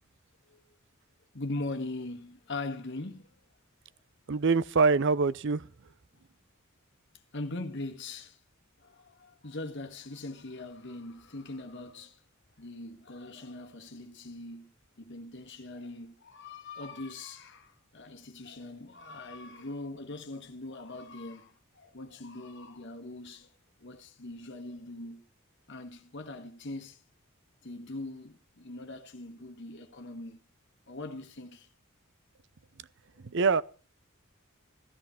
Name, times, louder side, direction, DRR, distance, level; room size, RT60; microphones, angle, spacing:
voice 1, 1.3-3.3 7.3-8.4 8.8-12.2 12.6-14.7 15.0-23.5 23.8-25.2 25.7-27.0 27.6-30.4 30.9-31.7, left 2 dB, 60° left, 1.6 m, -41 dB
voice 2, 4.3-5.7 33.2-33.6, right 4 dB, 60° right, 0.6 m, -24 dB
14.0 x 13.0 x 5.8 m
head